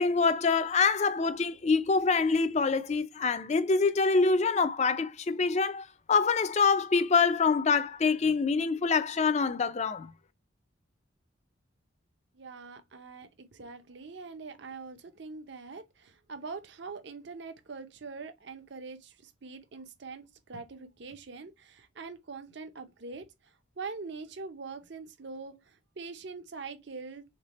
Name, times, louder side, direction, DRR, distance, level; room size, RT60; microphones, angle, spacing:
voice 1, 0.0-10.1, left 4 dB, 35° left, 0.4 m, -25 dB
voice 2, 12.3-27.2, right 4 dB, 55° right, 0.6 m, -43 dB
3.6 x 3.3 x 4.0 m
head